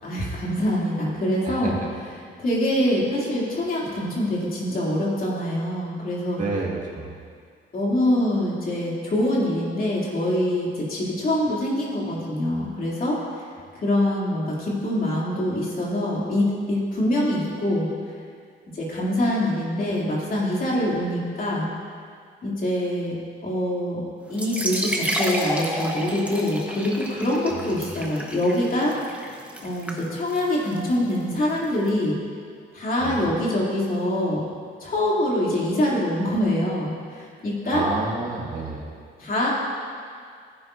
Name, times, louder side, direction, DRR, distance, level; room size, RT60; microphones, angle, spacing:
voice 1, 0.0-1.8 2.4-6.4 7.7-13.4 13.7-17.9 18.7-21.7 22.4-23.1 23.4-24.0 24.3-28.9 29.6-32.2 32.7-34.4 34.8-37.9 39.2-39.5, left 1 dB, 45° left, -5 dB, 3.0 m, -24 dB
voice 2, 1.4-1.9 6.4-7.1 27.5-27.9 33.0-33.3 37.7-38.9, right 3 dB, 40° right, -2 dB, 1.9 m, -29 dB
sound 1, 24.3-31.9, right 1 dB, 5° right, 1.3 m, -31 dB
15.5 x 9.3 x 2.7 m, 2.1 s
cardioid pair, 90°, 20 cm